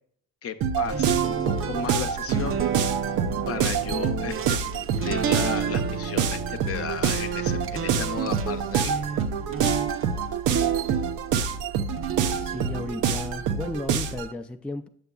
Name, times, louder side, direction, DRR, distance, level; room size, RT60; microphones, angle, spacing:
voice 1, 0.4-2.6 3.5-9.1, left 7 dB, 50° left, 9 dB, 0.7 m, -34 dB
sound 1, 0.6-14.3, right 7 dB, 90° right, 0.6 m, -27 dB
sound 2, 0.9-11.4 11.9-14.2, right 7 dB, 45° right, 0.6 m, -31 dB
voice 2, 12.4-14.9, left 2 dB, 5° left, 5 dB, 0.3 m, -34 dB
8.0 x 6.6 x 2.3 m, 0.64 s
cardioid pair, 90°, 30 cm